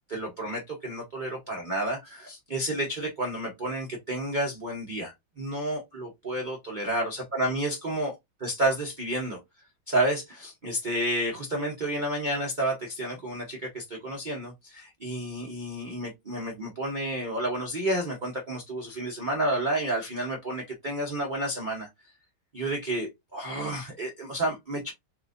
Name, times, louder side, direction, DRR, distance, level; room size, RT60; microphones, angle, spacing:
voice 1, 0.1-8.1 8.4-9.4 9.9-21.9 22.5-24.9, right 1 dB, 65° right, 0.4 m, -30 dB
4.2 x 2.5 x 2.5 m
omnidirectional pair, 2.1 m